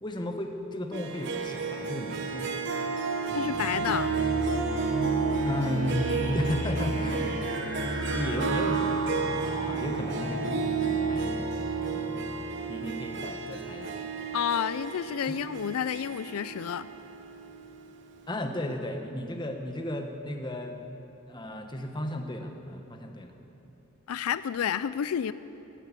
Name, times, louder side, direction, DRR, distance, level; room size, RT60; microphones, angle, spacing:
voice 1, 0.0-2.6 5.4-7.7 8.1-11.5 11.9-12.1 12.7-14.0 18.3-20.8 21.3-23.4, left 1 dB, 20° left, 4 dB, 1.1 m, -34 dB
Harp, 0.9-17.7, right 5 dB, 55° right, 1.0 m, -32 dB
voice 2, 3.3-4.2 14.3-16.9 24.1-25.3, left 8 dB, 90° left, 15 dB, 0.4 m, -30 dB
sound 1, 3.3-13.5, equal, 90° right, 4.6 m, -34 dB
13.5 x 12.0 x 8.3 m, 2.9 s
head